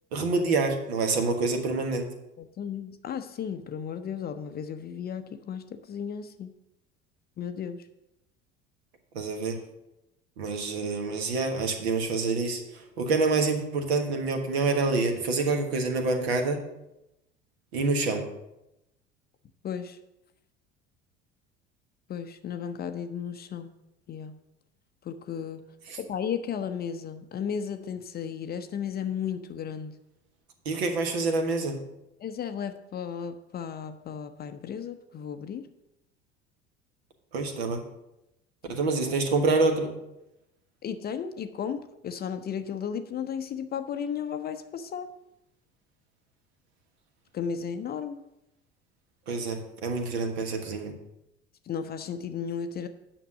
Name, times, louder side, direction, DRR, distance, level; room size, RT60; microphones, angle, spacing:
voice 1, 0.1-2.1 9.1-9.6 10.4-16.6 17.7-18.2 25.9-26.0 30.6-31.8 37.3-37.8 38.7-39.9 49.3-50.9, right 3 dB, 65° right, 5 dB, 1.4 m, -27 dB
voice 2, 2.4-6.5 7.4-7.8 19.6-20.0 22.1-23.7 24.1-24.4 25.0-25.6 26.0-30.0 32.2-35.7 40.8-45.1 47.3-48.2 51.7-52.9, left 7 dB, 30° left, 9 dB, 0.6 m, -34 dB
9.1 x 6.0 x 6.4 m, 0.88 s
figure-of-eight pair, 65°, 34 cm